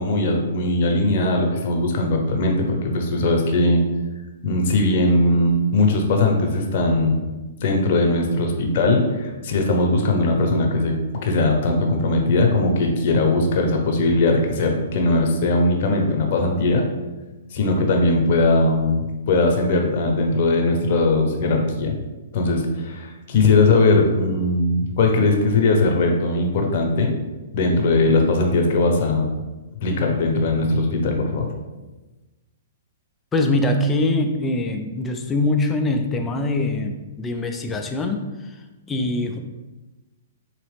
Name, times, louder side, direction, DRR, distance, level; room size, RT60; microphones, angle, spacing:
voice 1, 0.0-3.8 4.4-7.2 7.6-10.9 11.2-16.8 17.5-21.9 22.3-27.1 27.5-29.3 29.8-31.5, left 2 dB, 50° left, 2 dB, 0.8 m, -19 dB
voice 2, 33.3-38.6 38.9-39.4, left 2 dB, 15° left, 5 dB, 0.4 m, -23 dB
4.0 x 2.9 x 3.3 m, 1.1 s
hypercardioid pair, 135°, 0 cm